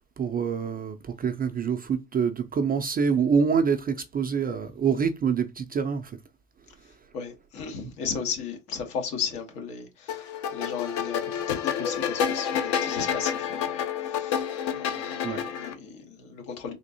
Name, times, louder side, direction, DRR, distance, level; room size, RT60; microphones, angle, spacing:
voice 1, 0.2-6.1 15.2-15.4, right 6 dB, 20° right, 0.3 m, -26 dB
voice 2, 7.1-10.2 10.5-13.8 14.0-14.4 14.7-16.7, left 6 dB, 75° left, 1.3 m, -35 dB
sound 1, 10.1-15.7, left 8 dB, 60° left, 0.8 m, -29 dB
3.5 x 2.5 x 2.7 m
hypercardioid pair, 70°, 46 cm